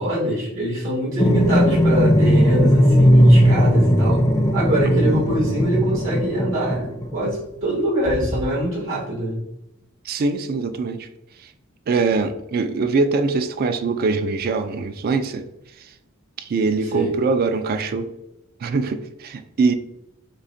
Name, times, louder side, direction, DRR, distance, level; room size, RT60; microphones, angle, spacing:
voice 1, 0.0-4.3 4.5-9.4 16.9-17.1, right 1 dB, 70° right, -7 dB, 1.4 m, -24 dB
sound 1, 1.2-7.3 8.1-8.4, equal, 15° left, 0.5 m, -17 dB
voice 2, 4.9-5.2 10.1-11.1 11.9-15.5 16.4-18.1 18.6-19.7, right 4 dB, 45° right, 9 dB, 0.3 m, -23 dB
5.2 x 2.1 x 2.6 m, 0.86 s
head